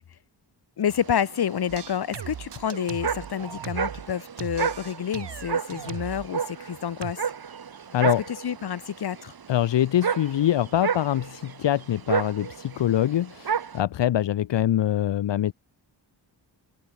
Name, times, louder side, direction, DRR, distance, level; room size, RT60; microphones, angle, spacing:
voice 1, 0.8-7.2 8.3-9.3, left 9 dB, 60° left, 1.4 m, -29 dB
sound 1, 0.9-13.8, right 7 dB, 55° right, 3.0 m, -32 dB
sound 2, 1.7-4.1 4.4-6.3 7.0-7.1, right 8 dB, 70° right, 2.3 m, -38 dB
voice 2, 9.5-15.5, left 12 dB, 80° left, 0.9 m, -24 dB
open air
wide cardioid pair, 150°, 43 cm